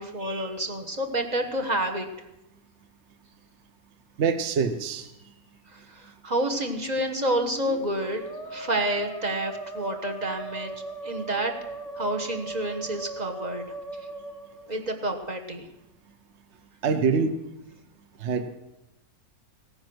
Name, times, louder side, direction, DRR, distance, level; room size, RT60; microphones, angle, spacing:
voice 1, 0.0-2.1 5.7-10.7 11.0-11.5 11.9-13.7 14.7-15.6, right 1 dB, 30° right, 4 dB, 1.2 m, -29 dB
voice 2, 4.2-5.1 16.8-17.4 18.2-18.6, right 5 dB, 55° right, 10 dB, 1.1 m, -25 dB
Musical instrument, 6.4-15.2, right 1 dB, 30° left, 1.1 m, -38 dB
16.5 x 9.8 x 6.1 m, 0.90 s
omnidirectional pair, 1.6 m